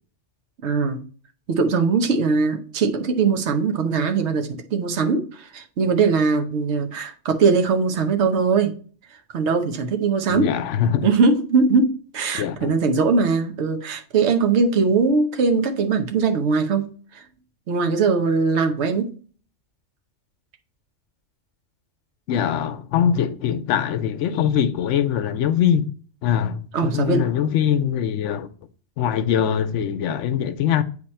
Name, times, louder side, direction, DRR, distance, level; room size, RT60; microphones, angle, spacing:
voice 1, 0.6-1.0 1.5-8.7 9.3-10.5 11.0-16.9 17.7-19.1 26.7-27.3, right 4 dB, 70° right, 1.1 m, -21 dB
voice 2, 10.3-11.1 12.4-12.7 22.3-25.9 26.2-28.5 29.0-30.8, left 9 dB, 85° left, 0.9 m, -22 dB
8.4 x 2.9 x 4.2 m
omnidirectional pair, 1.2 m